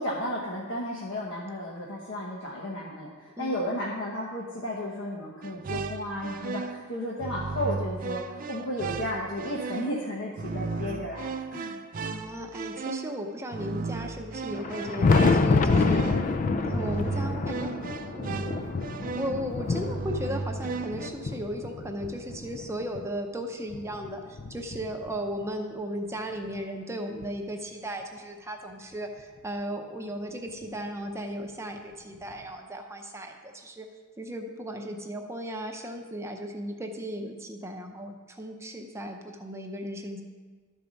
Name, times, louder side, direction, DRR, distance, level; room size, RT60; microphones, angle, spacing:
voice 1, 0.0-11.8, left 1 dB, 60° left, -4 dB, 1.1 m, -33 dB
sound 1, 5.4-21.1, right 4 dB, 40° right, 0.4 m, -35 dB
voice 2, 12.0-16.0 16.4-17.8 18.1-18.6 19.1-33.9 34.2-40.2, equal, 15° right, 3 dB, 0.7 m, -36 dB
Thunder, 14.5-23.1 23.7-25.4 26.6-26.7 27.2-27.3 29.2-29.3 30.6-30.7 32.3-32.4, left 3 dB, 40° left, 0.4 m, -27 dB
12.5 x 4.6 x 5.2 m, 1.5 s
head